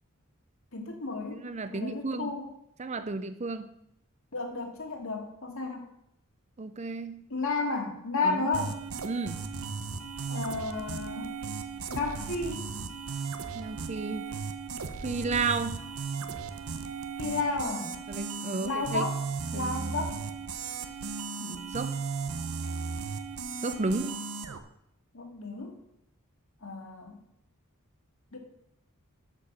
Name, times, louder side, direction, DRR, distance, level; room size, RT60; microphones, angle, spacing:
voice 1, 0.7-1.4 1.7-2.5 4.3-5.9 7.3-8.8 10.3-11.3 11.9-12.6 17.2-17.9 18.6-19.2 19.5-20.2 25.1-25.7 26.6-27.2 28.3-28.4, left 3 dB, 65° left, 2 dB, 2.2 m, -32 dB
voice 2, 1.3-2.3 2.8-3.7 6.6-7.2 8.2-8.5 9.0-9.4 13.5-14.3 15.0-15.8 18.1-19.1 19.5-20.0 21.4-21.9 23.6-24.1, right 3 dB, 30° right, 11 dB, 0.5 m, -33 dB
sound 1, 8.5-24.6, right 5 dB, 75° right, 0.8 m, -36 dB
7.5 x 6.6 x 7.3 m, 0.78 s
head